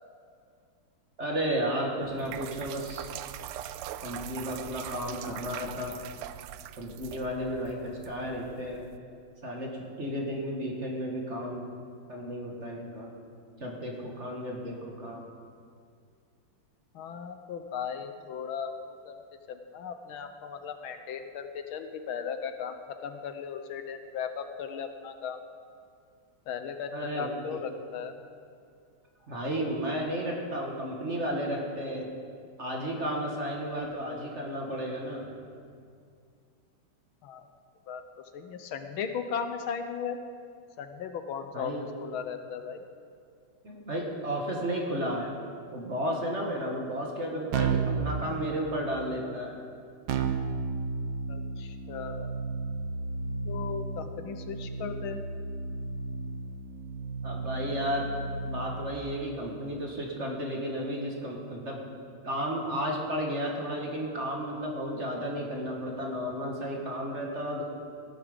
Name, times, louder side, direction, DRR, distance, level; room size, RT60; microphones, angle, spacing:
voice 1, 1.2-3.1 4.0-6.0 6.8-8.9 9.4-9.7 10.0-11.7 12.1-13.1 13.6-15.2 26.9-27.6 29.3-32.1 32.6-35.3 41.5-41.8 43.6-45.3 45.7-49.6 57.2-61.8 62.2-67.6, equal, 35° right, -1 dB, 1.7 m, -33 dB
sound 1, 2.0-9.0, right 12 dB, 85° right, 1.5 m, -42 dB
voice 2, 16.9-19.2 19.5-22.7 23.0-25.4 26.5-28.1 37.2-37.5 37.9-38.0 38.3-40.2 40.8-41.7 42.0-42.8 51.3-52.4 53.5-55.2, left 7 dB, 75° left, 8 dB, 1.6 m, -37 dB
Keyboard (musical), 47.5-48.1 50.1-59.0, right 4 dB, 65° right, 1.5 m, -33 dB
17.0 x 11.0 x 5.1 m, 2.3 s
omnidirectional pair, 2.4 m